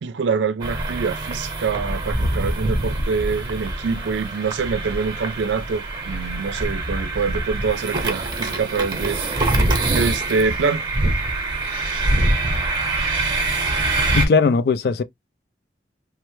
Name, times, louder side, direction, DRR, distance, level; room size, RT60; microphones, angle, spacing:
voice 1, 0.0-9.2 9.9-10.9, right 5 dB, 85° right, 0.4 m, -25 dB
sound 1, 0.6-14.3, right 2 dB, 25° right, 0.8 m, -24 dB
voice 2, 14.1-15.0, left 5 dB, 60° left, 0.3 m, -18 dB
3.1 x 2.0 x 3.0 m
head